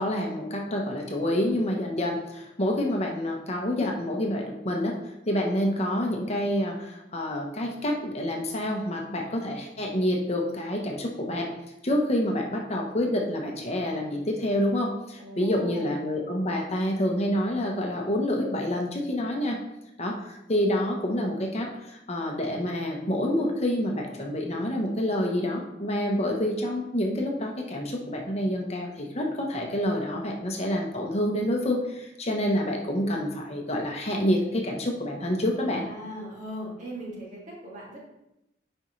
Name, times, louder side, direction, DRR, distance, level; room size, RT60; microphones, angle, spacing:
voice 1, 0.0-11.5 11.8-19.6 20.0-35.8, left 1 dB, 35° left, 1 dB, 1.0 m, -28 dB
voice 2, 15.2-16.0 35.6-38.0, equal, 45° right, -4 dB, 2.3 m, -39 dB
9.4 x 5.4 x 3.2 m, 0.89 s
head